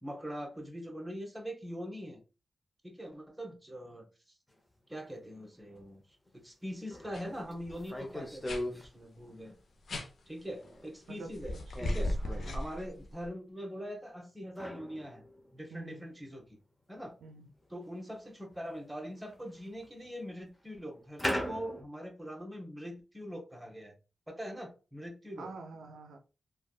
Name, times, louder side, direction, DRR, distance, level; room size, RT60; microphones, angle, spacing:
voice 1, 0.0-2.2 2.8-4.3 4.9-6.0 6.3-9.5 10.3-11.5 11.8-12.2 12.5-15.2 15.5-16.6 16.9-17.1 17.7-23.9 24.3-25.5, equal, 15° right, 1.1 m, -42 dB
sound 1, 4.5-4.6 5.8-5.9 6.3-6.4 6.9-8.9 10.2-10.9 11.7-12.6 14.6-16.0 16.3-16.4 17.7-17.8 18.5-18.7 19.1-20.1 21.2-21.8, left 1 dB, 20° left, 0.9 m, -39 dB
sound 2, 7.1-7.2 7.5-7.8 8.4-8.6 9.9-10.1 11.3-13.3, left 1 dB, 70° left, 0.6 m, -35 dB
voice 2, 12.2-12.6 15.7-16.1 17.2-17.5 25.4-26.2, right 3 dB, 90° right, 0.4 m, -47 dB
3.3 x 2.3 x 2.3 m
supercardioid pair, 40°, 0 cm